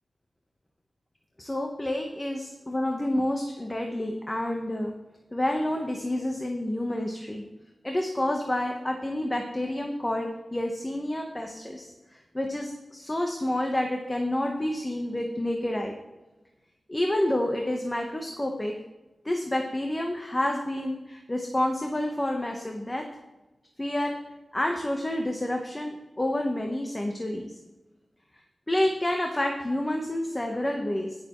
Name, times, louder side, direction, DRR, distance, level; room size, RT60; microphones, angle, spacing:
voice 1, 1.4-4.9 5.3-7.4 7.8-15.9 16.9-18.7 19.2-23.0 23.8-24.2 24.5-27.6 28.7-31.2, left 1 dB, 20° left, 2 dB, 1.1 m, -29 dB
18.5 x 6.8 x 3.1 m, 1.1 s
wide cardioid pair, 105°, 0 cm